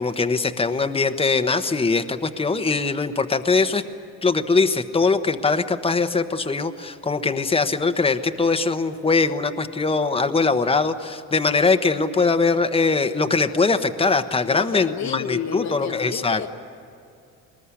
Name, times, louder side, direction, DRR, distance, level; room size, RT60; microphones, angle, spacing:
voice 1, 0.0-3.8 4.2-16.4, left 4 dB, 20° left, 8 dB, 1.2 m, -21 dB
voice 2, 14.5-16.5, left 9 dB, 65° left, 7 dB, 1.1 m, -30 dB
22.0 x 20.5 x 9.9 m, 2.6 s
cardioid pair, 90°, 30 cm